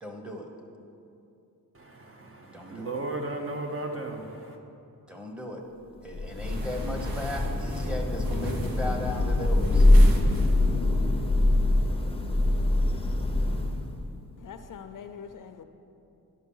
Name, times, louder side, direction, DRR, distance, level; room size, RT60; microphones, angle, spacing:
voice 1, 0.0-0.5 2.5-2.9 5.1-5.6 6.0-9.9, left 1 dB, 5° right, 1 dB, 1.0 m, -36 dB
voice 2, 1.7-4.6, right 2 dB, 35° right, 3 dB, 0.9 m, -35 dB
Thunder / Rain, 6.1-14.1, left 1 dB, 15° left, 0.6 m, -23 dB
sound 1, 6.3-10.9, right 2 dB, 70° right, 1.1 m, -45 dB
voice 3, 14.4-15.6, left 7 dB, 60° left, 8 dB, 0.6 m, -43 dB
10.0 x 6.2 x 5.5 m, 2.7 s
wide cardioid pair, 110°, 36 cm